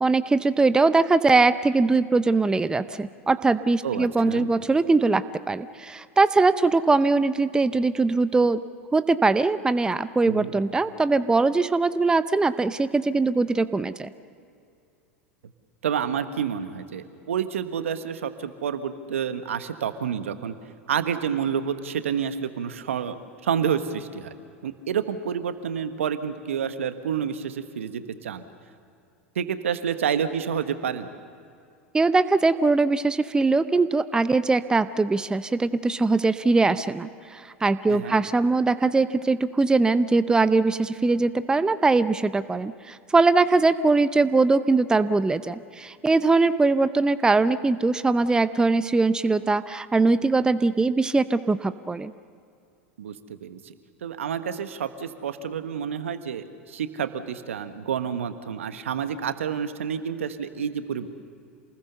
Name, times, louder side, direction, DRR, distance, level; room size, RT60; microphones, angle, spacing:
voice 1, 0.0-8.6 8.9-14.1 31.9-52.1, right 3 dB, 10° right, 14 dB, 0.7 m, -21 dB
voice 2, 3.8-4.5 10.2-10.5 15.8-20.5 20.9-23.2 23.4-24.3 24.6-28.4 29.3-31.1 37.9-38.2 53.0-53.7 54.0-61.1, right 8 dB, 75° right, 10 dB, 1.3 m, -29 dB
27.5 x 20.0 x 6.8 m, 2.4 s
hypercardioid pair, 90°, 7 cm